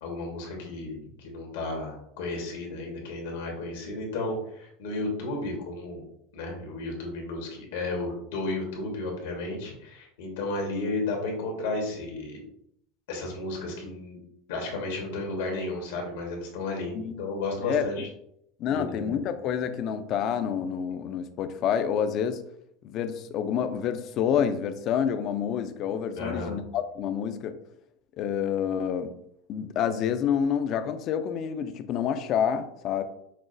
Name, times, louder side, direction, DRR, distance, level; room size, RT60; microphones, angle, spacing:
voice 1, 0.0-6.0 6.3-12.4 13.1-14.2 14.5-18.1 18.6-19.2 26.1-26.5, left 2 dB, 85° left, 1 dB, 1.3 m, -33 dB
voice 2, 18.6-22.4 22.8-27.5 28.2-29.1 29.5-33.0, left 8 dB, 50° left, 10 dB, 0.4 m, -28 dB
6.0 x 2.0 x 2.5 m, 0.72 s
supercardioid pair, 120°, 0 cm